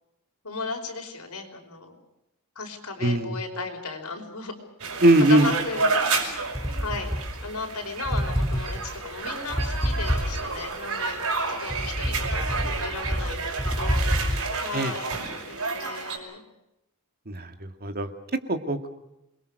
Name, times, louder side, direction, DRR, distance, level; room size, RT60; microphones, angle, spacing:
voice 1, 0.4-2.0 2.5-4.5 5.3-6.2 6.8-7.1 7.4-14.0 14.6-15.2 15.5-16.4, left 3 dB, 85° left, 4 dB, 5.0 m, -35 dB
voice 2, 3.0-3.3 5.0-5.5 14.7-14.9 17.3-18.1 18.5-18.9, right 1 dB, 45° right, 7 dB, 2.1 m, -21 dB
sound 1, 4.8-16.2, right 4 dB, 70° right, 5.9 m, -30 dB
sound 2, 6.5-7.7 8.0-10.7 11.2-14.4, equal, ahead, 2.4 m, -27 dB
27.5 x 22.0 x 6.5 m, 0.88 s
head